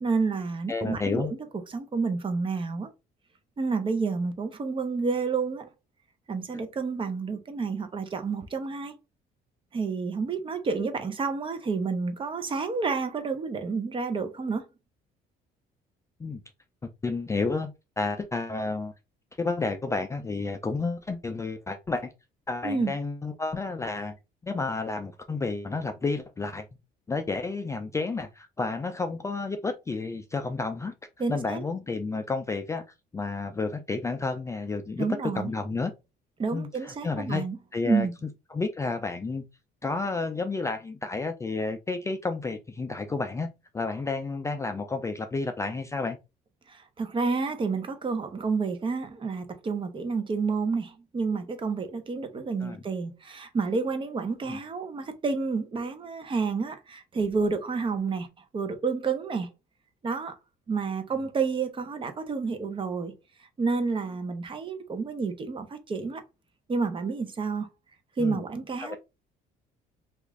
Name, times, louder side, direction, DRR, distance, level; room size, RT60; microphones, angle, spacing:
voice 1, 0.0-1.4 1.7-2.9 3.6-5.7 6.3-8.9 9.7-14.6 22.6-22.9 31.2-31.6 35.0-35.5 36.4-37.6 37.8-38.1 46.7-58.3 58.5-59.5 60.0-60.3 60.7-63.1 63.6-66.2 66.7-67.7 68.2-69.0, right 4 dB, 30° right, 0.7 m, -29 dB
voice 2, 0.7-1.3 16.2-16.4 17.0-18.9 19.4-22.1 22.5-24.1 24.4-26.7 27.1-30.9 31.3-32.8 33.1-35.9 36.5-37.4 37.7-38.1 38.5-39.4 39.8-43.5 43.7-46.2 52.6-52.8 54.5-54.6 68.2-68.4 68.8-69.0, left 3 dB, 15° left, 0.3 m, -31 dB
2.9 x 2.5 x 3.5 m
cardioid pair, 110°, 17 cm